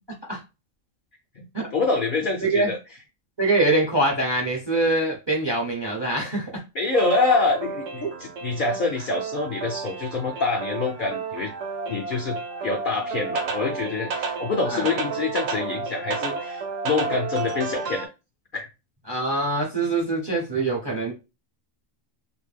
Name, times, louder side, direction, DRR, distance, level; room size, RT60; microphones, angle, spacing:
voice 1, 1.4-2.8 6.7-11.5 11.9-18.1 18.5-18.7, left 3 dB, 70° left, 3 dB, 0.5 m, -26 dB
voice 2, 2.4-2.7 3.4-6.6 8.0-8.1 14.7-14.9 19.1-21.1, right 2 dB, 30° right, 0 dB, 0.4 m, -24 dB
sound 1, 6.9-18.1, right 4 dB, 75° right, 1.0 m, -31 dB
2.5 x 2.1 x 3.2 m, 0.27 s
omnidirectional pair, 1.4 m